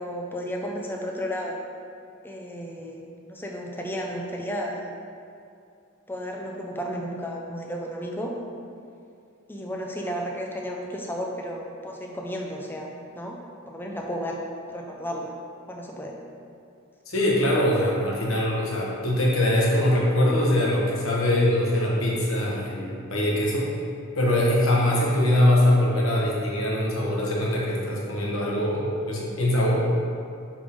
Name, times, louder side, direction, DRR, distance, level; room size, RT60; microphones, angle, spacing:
voice 1, 0.0-1.6 2.2-4.9 6.1-8.3 9.5-13.4 13.7-14.4 14.7-15.3 15.7-16.2 26.1-26.3, equal, 10° left, 0 dB, 0.5 m, -33 dB
voice 2, 17.1-23.7 24.2-29.9, left 1 dB, 70° left, -4 dB, 1.2 m, -22 dB
5.5 x 5.1 x 3.6 m, 2.5 s
head